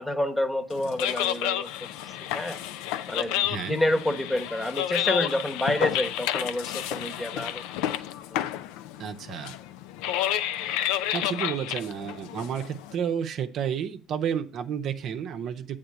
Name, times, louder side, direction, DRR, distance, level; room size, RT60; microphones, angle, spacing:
voice 1, 0.0-1.7 2.0-2.6 3.1-7.6 8.3-8.4, left 1 dB, 15° left, 9 dB, 1.1 m, -28 dB
sound 1, 0.7-12.9, left 12 dB, 75° left, 0.4 m, -30 dB
voice 2, 3.4-3.8 9.0-9.6 10.6-15.8, right 8 dB, 60° right, 8 dB, 0.7 m, -31 dB
7.8 x 3.6 x 6.6 m, 0.35 s
hypercardioid pair, 65°, 0 cm